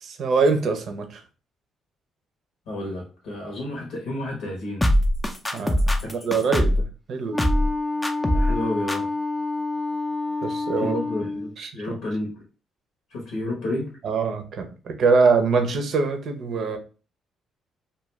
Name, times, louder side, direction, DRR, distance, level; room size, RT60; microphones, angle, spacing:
voice 1, 0.0-1.2 5.5-5.8 6.1-7.4 10.4-11.0 11.6-12.0 14.0-16.8, right 4 dB, 65° right, 7 dB, 0.6 m, -23 dB
voice 2, 2.7-4.9 6.0-6.2 8.3-9.1 10.8-12.4 13.1-14.0, left 1 dB, 80° left, -1 dB, 0.9 m, -31 dB
sound 1, 4.8-6.9 7.4-7.7 8.0-8.6 8.9-9.0, equal, 15° left, 0.4 m, -21 dB
Wind instrument woodwind instrument, 7.3-11.5, left 2 dB, 5° right, 0.8 m, -28 dB
2.4 x 2.2 x 3.1 m, 0.35 s
supercardioid pair, 60°, 0 cm